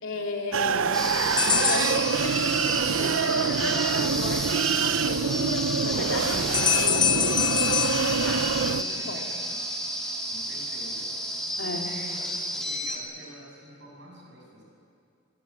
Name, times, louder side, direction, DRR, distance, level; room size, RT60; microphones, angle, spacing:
voice 1, 0.0-1.1 1.6-9.3 11.6-11.9, left 2 dB, 70° left, 1 dB, 3.4 m, -35 dB
sound 1, 0.5-8.8, right 6 dB, 80° right, 0.6 m, -26 dB
sound 2, 0.9-13.0, left 1 dB, ahead, 2.7 m, -32 dB
sound 3, 1.4-2.9 6.5-9.0, left 8 dB, 25° left, 0.5 m, -27 dB
voice 2, 8.8-9.4 10.0-12.3 12.5-14.6, right 1 dB, 60° right, -1 dB, 7.9 m, -47 dB
25.5 x 18.0 x 9.9 m, 2.4 s
head